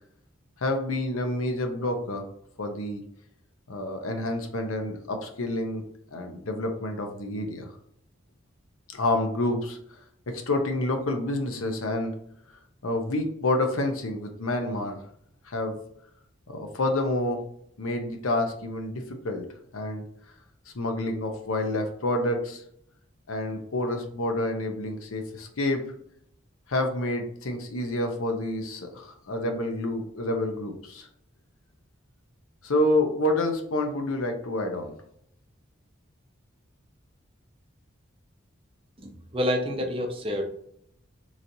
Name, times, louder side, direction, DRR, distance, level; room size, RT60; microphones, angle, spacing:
voice 1, 0.6-2.3 2.6-3.0 3.7-5.8 6.1-7.7 8.9-9.8 10.3-12.1 12.8-15.0 15.4-15.8 16.5-17.4 17.8-19.5 19.7-20.0 20.7-22.6 23.3-25.8 26.7-31.1 32.6-34.9, left 1 dB, 90° left, 4 dB, 0.8 m, -28 dB
voice 2, 39.0-40.4, left 1 dB, 25° right, 2 dB, 0.6 m, -28 dB
3.9 x 3.1 x 2.7 m, 0.70 s
head